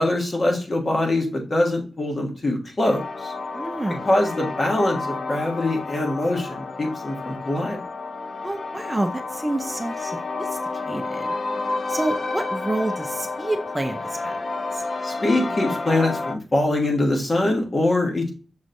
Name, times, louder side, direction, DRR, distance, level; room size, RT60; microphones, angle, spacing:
voice 1, 0.0-3.3 4.0-7.8 15.0-18.3, left 1 dB, 45° left, 1 dB, 1.4 m, -23 dB
sound 1, 2.8-16.4, left 3 dB, 60° left, 0.5 m, -30 dB
voice 2, 3.5-4.1 8.4-10.6 10.9-11.3 11.9-14.4 14.7-14.8, right 1 dB, 15° right, 6 dB, 0.5 m, -28 dB
6.3 x 3.0 x 2.6 m, 0.35 s
wide cardioid pair, 80°, 0 cm